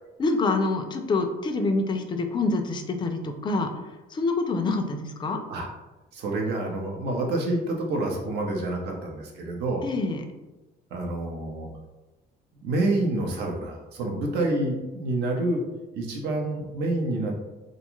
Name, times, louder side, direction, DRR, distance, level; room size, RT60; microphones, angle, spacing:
voice 1, 0.2-3.7 4.1-5.4 9.8-10.2, left 3 dB, 25° left, 6 dB, 0.3 m, -26 dB
voice 2, 6.1-9.9 10.9-11.7 12.6-15.6 15.9-17.3, right 2 dB, 75° right, 1 dB, 0.7 m, -28 dB
2.5 x 2.3 x 3.0 m, 1.1 s
cardioid pair, 110°, 17 cm